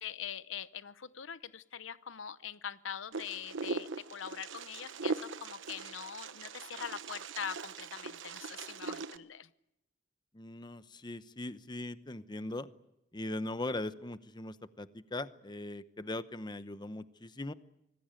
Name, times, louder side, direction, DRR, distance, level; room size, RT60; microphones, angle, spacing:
voice 1, 0.0-9.5, left 8 dB, 85° left, 15 dB, 0.8 m, -43 dB
Wind, 3.1-9.2, right 4 dB, 75° right, 1.0 m, -40 dB
voice 2, 10.3-12.7 13.1-17.5, left 2 dB, 25° left, 13 dB, 0.9 m, -40 dB
25.5 x 19.0 x 9.0 m, 0.86 s
head